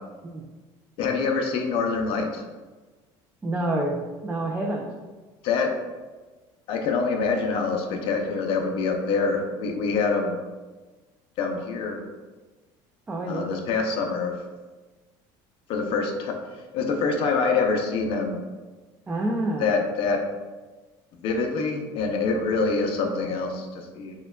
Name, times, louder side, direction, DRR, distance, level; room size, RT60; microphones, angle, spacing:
voice 1, 1.0-2.4 5.4-5.7 6.7-10.4 11.4-12.0 13.3-14.4 15.7-16.4 16.7-18.4 19.6-20.2 21.2-24.1, left 4 dB, 55° left, 3 dB, 0.6 m, -25 dB
voice 2, 3.4-4.9 13.1-13.5 19.1-19.7, right 1 dB, 15° right, 0 dB, 0.3 m, -27 dB
6.4 x 2.3 x 2.2 m, 1.3 s
cardioid pair, 140°, 11 cm